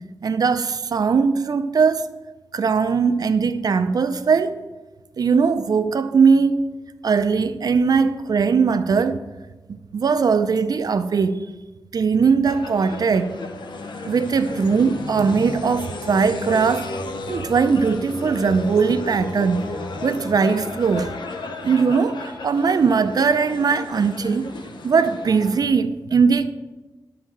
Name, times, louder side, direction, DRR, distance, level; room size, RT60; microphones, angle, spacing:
voice 1, 0.2-2.1 2.5-4.6 5.2-6.6 7.0-9.2 9.7-11.4 11.9-13.3 14.0-16.9 17.3-19.6 20.0-21.1 21.6-24.5 24.8-26.5, right 5 dB, 55° right, 0.5 m, -20 dB
sound 1, 12.5-25.6, left 2 dB, 75° left, 0.7 m, -33 dB
10.0 x 3.9 x 7.4 m
wide cardioid pair, 165°, 8 cm